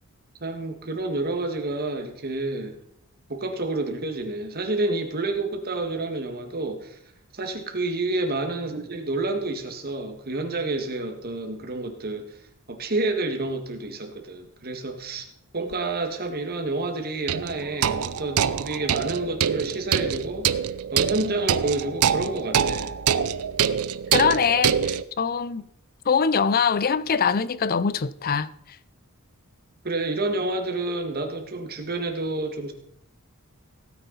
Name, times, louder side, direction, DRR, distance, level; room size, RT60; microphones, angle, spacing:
voice 1, 0.4-2.7 3.3-7.0 7.3-12.4 12.7-15.2 15.5-20.6 20.9-22.9 29.8-32.7, right 2 dB, 45° right, 1.8 m, -29 dB
sound 1, 15.7-15.8 17.3-25.0, right 8 dB, 85° right, 0.5 m, -25 dB
voice 2, 24.1-25.6 26.1-28.5, left 6 dB, 45° left, 0.5 m, -23 dB
16.5 x 9.5 x 4.1 m
head